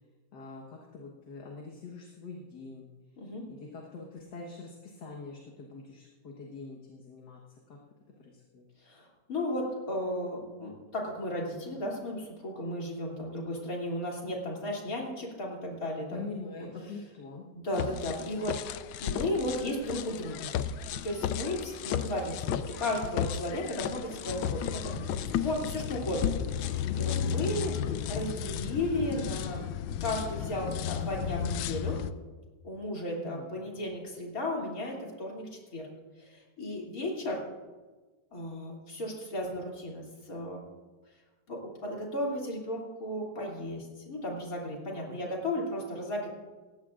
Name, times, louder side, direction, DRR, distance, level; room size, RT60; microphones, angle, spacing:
voice 1, 0.3-2.9 3.5-7.4 7.7-7.8 8.2-8.7 16.1-17.4 26.8-27.4 33.1-33.6 44.7-45.3, left 4 dB, 65° left, -1 dB, 1.9 m, -44 dB
voice 2, 8.8-16.2 16.6-16.7 17.5-20.5 20.9-25.1 25.4-27.7 28.1-29.6 30.0-32.0 32.6-35.9 36.2-37.4 38.3-40.6 41.5-46.3, left 1 dB, 50° left, -2 dB, 3.3 m, -35 dB
sound 1, 17.7-32.1, left 9 dB, 90° left, 1.3 m, -34 dB
18.5 x 15.5 x 2.5 m, 1.3 s
omnidirectional pair, 2.0 m